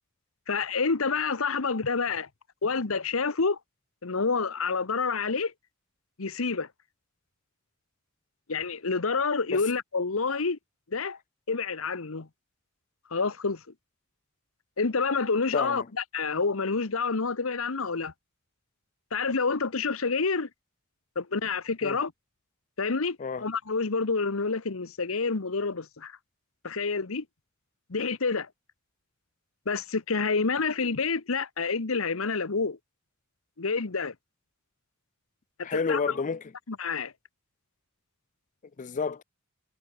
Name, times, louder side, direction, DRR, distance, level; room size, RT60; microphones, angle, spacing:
voice 1, 0.5-2.3 2.6-3.6 4.0-5.5 6.2-6.7 8.5-10.6 10.9-11.2 11.5-12.3 13.1-13.6 14.8-15.8 16.1-18.1 19.1-20.5 21.2-22.1 22.8-26.2 26.6-27.2 27.9-28.5 29.7-32.8 33.6-34.1 35.6-36.0 36.7-37.1, left 4 dB, 80° left, 1.1 m, -28 dB
voice 2, 15.5-15.9 21.8-22.0 23.2-23.4 35.6-36.4 38.8-39.2, left 5 dB, 40° left, 0.5 m, -30 dB
head